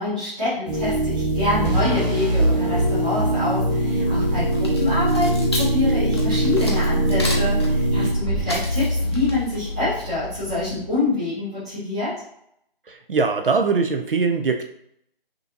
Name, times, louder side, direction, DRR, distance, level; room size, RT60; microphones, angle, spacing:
voice 1, 0.0-12.1, left 2 dB, 10° right, -14 dB, 0.9 m, -26 dB
sound 1, 0.7-9.3, right 1 dB, 45° right, 1.2 m, -22 dB
sound 2, 4.4-11.0, left 1 dB, 30° left, 0.6 m, -29 dB
voice 2, 12.9-14.6, right 4 dB, 65° right, 5 dB, 0.5 m, -21 dB
5.4 x 2.7 x 2.5 m, 0.73 s
figure-of-eight pair, 175°, 29 cm